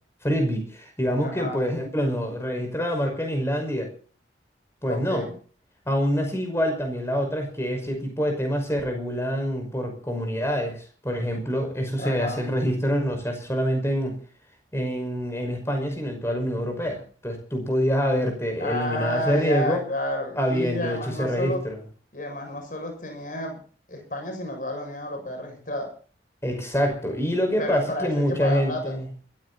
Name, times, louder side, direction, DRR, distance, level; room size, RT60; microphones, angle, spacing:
voice 1, 0.2-3.9 4.8-5.3 5.9-14.2 14.7-19.8 20.4-21.8 26.4-29.1, equal, 15° left, 4 dB, 5.6 m, -26 dB
voice 2, 1.2-1.6 4.8-5.3 12.0-12.4 18.6-21.6 22.1-23.6 23.9-25.9 27.6-29.0, left 1 dB, 45° left, 4 dB, 6.8 m, -31 dB
21.5 x 14.5 x 4.2 m, 0.42 s
head